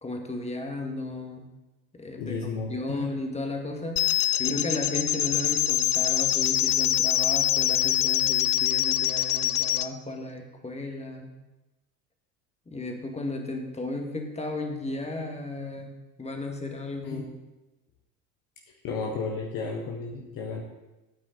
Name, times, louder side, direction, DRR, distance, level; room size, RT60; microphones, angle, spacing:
voice 1, 0.0-1.5 2.0-4.0 4.4-11.3 12.7-15.9 16.2-17.3, left 2 dB, 15° left, 3 dB, 1.9 m, -34 dB
voice 2, 2.2-3.2 17.0-17.3 18.8-20.6, left 4 dB, 40° left, 1 dB, 1.6 m, -33 dB
sound 1, 4.0-9.9, left 14 dB, 60° left, 0.6 m, -24 dB
14.5 x 9.1 x 4.0 m, 1.0 s
figure-of-eight pair, 70°, 49 cm